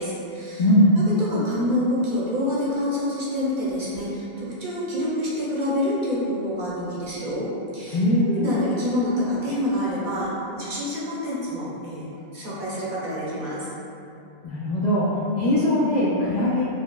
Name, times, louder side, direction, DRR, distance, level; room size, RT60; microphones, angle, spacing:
voice 1, 0.0-0.6 1.1-13.7, left 1 dB, 55° right, -7 dB, 0.8 m, -27 dB
voice 2, 0.6-0.9 7.9-8.3 14.4-15.1 15.4-16.6, left 1 dB, 55° left, -8 dB, 0.5 m, -20 dB
4.9 x 2.0 x 2.2 m, 2.6 s
omnidirectional pair, 1.1 m